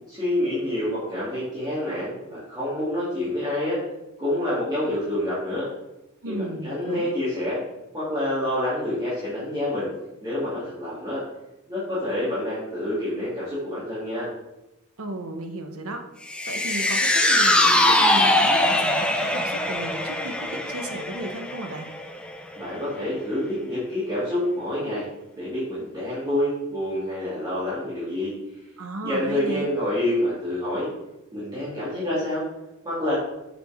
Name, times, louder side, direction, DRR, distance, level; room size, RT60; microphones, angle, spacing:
voice 1, 0.1-3.8 4.2-5.7 6.3-7.6 7.9-9.9 10.2-11.2 11.7-14.3 22.6-25.0 25.3-28.3 29.0-30.9 31.3-32.4 32.8-33.1, left 1 dB, 20° right, -11 dB, 2.7 m, -27 dB
voice 2, 6.2-7.1 15.0-16.1 16.5-21.9 28.8-29.7, right 1 dB, 80° right, 6 dB, 1.0 m, -34 dB
sound 1, 16.3-22.7 23.1-23.2, left 1 dB, 5° left, 0.6 m, -22 dB
7.6 x 6.6 x 3.6 m, 0.94 s
head